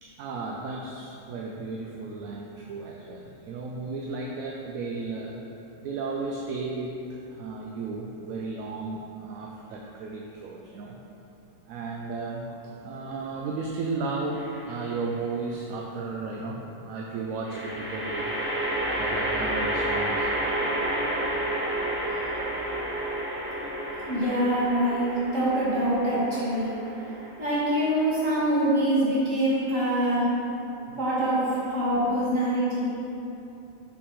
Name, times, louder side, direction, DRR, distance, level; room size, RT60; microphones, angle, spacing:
voice 1, 0.0-11.0 11.6-18.3 19.0-20.8 22.5-23.5 27.2-27.8 30.8-31.0, right 3 dB, 85° right, -1 dB, 1.0 m, -35 dB
sound 1, 14.3-14.9 17.4-28.8, right 1 dB, 10° right, 0.9 m, -31 dB
voice 2, 24.0-26.7 27.4-30.3 31.0-32.9, right 1 dB, 65° right, -9 dB, 2.1 m, -24 dB
5.8 x 4.3 x 4.8 m, 2.9 s
omnidirectional pair, 1.4 m